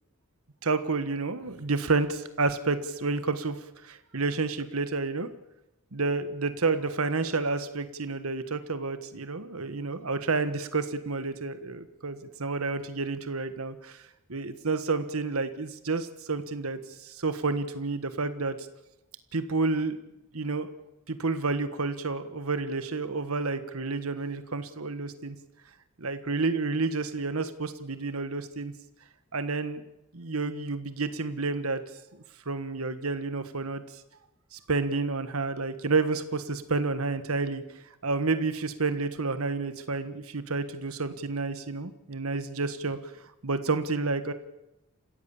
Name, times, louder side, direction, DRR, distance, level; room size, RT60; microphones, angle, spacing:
voice 1, 0.6-5.3 5.9-14.0 14.3-18.7 19.3-20.0 20.3-20.7 21.1-25.3 26.0-28.7 29.3-29.8 30.1-31.8 32.4-33.8 34.5-37.6 38.0-43.0 43.4-44.3, right 3 dB, 85° right, 11 dB, 1.5 m, -30 dB
28.0 x 15.5 x 7.2 m, 0.88 s
head